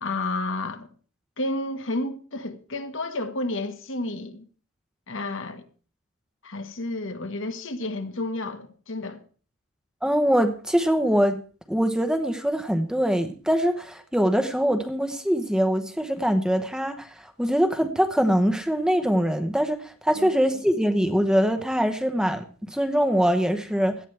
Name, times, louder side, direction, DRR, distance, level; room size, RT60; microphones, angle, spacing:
voice 1, 0.0-0.9 1.4-4.5 5.1-5.7 6.4-9.2 20.2-20.3, left 2 dB, 60° left, 1.4 m, -31 dB
voice 2, 10.0-11.4 11.7-17.1 17.4-24.0, equal, 5° right, 0.9 m, -23 dB
16.5 x 12.5 x 3.4 m
head